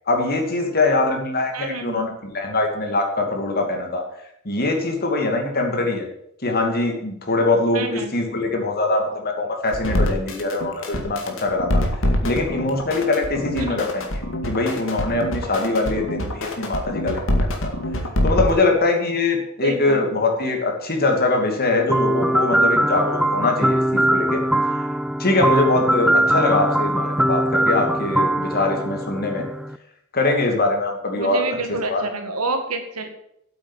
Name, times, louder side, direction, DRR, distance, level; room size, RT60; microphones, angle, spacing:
voice 1, 0.1-4.0 4.4-6.1 6.4-11.8 12.2-14.0 14.5-17.2 17.6-17.7 18.2-24.4 25.2-29.5 30.1-31.4 31.7-32.0, left 2 dB, 45° left, 3 dB, 2.5 m, -22 dB
voice 2, 1.5-2.0 7.7-8.1 13.5-13.8 19.6-20.1 26.3-26.5 31.2-33.1, right 2 dB, 85° right, 6 dB, 2.1 m, -28 dB
sound 1, 9.7-18.5, equal, 65° left, 2.1 m, -24 dB
sound 2, 21.9-29.8, right 1 dB, ahead, 0.3 m, -21 dB
8.5 x 8.4 x 9.0 m, 0.76 s
head